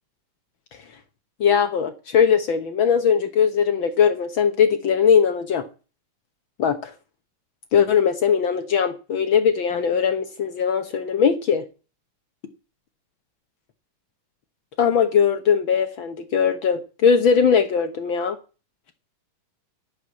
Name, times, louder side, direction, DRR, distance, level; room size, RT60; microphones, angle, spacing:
voice 1, 1.4-5.7 6.6-6.9 7.7-11.6 14.8-18.4, left 7 dB, 75° left, 1.1 m, -20 dB
11.0 x 6.4 x 8.3 m
omnidirectional pair, 3.6 m